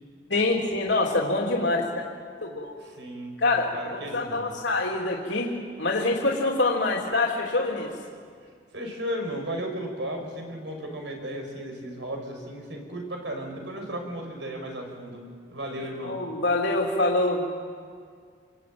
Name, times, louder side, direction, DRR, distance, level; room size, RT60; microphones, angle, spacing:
voice 1, 0.3-1.8 2.4-2.7 3.4-5.5 5.8-7.9 16.0-17.4, left 2 dB, 75° left, -2 dB, 3.3 m, -25 dB
voice 2, 2.8-3.4 3.7-4.5 8.7-15.2 15.5-16.2, equal, 75° right, 3 dB, 5.8 m, -35 dB
27.5 x 22.0 x 8.9 m, 2.1 s
head